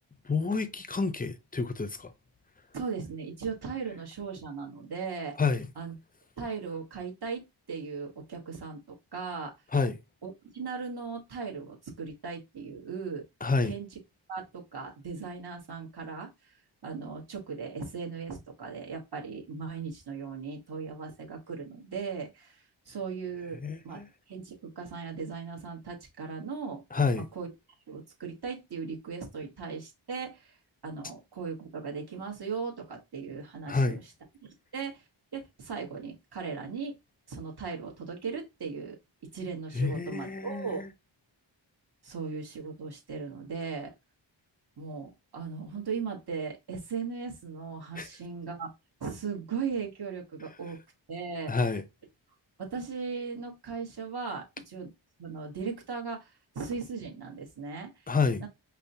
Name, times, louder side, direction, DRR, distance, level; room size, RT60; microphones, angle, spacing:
voice 1, 0.3-2.1 5.4-5.7 9.7-10.0 13.4-13.8 23.6-24.1 26.9-27.3 33.7-34.0 39.7-40.9 48.0-48.1 51.5-51.8 58.1-58.4, left 4 dB, 20° left, 0.4 m, -28 dB
voice 2, 2.7-5.4 5.8-5.9 6.4-9.5 10.2-13.2 13.6-13.9 14.3-16.5 16.8-23.6 23.8-26.8 27.1-27.5 27.9-30.6 30.8-34.0 34.7-35.0 35.3-37.0 37.3-39.0 39.3-40.8 42.0-43.9 44.8-48.7 49.0-50.8 51.1-51.5 52.6-54.9 55.2-58.5, right 5 dB, 55° right, 1.2 m, -38 dB
5.3 x 2.1 x 2.7 m
wide cardioid pair, 95°, 47 cm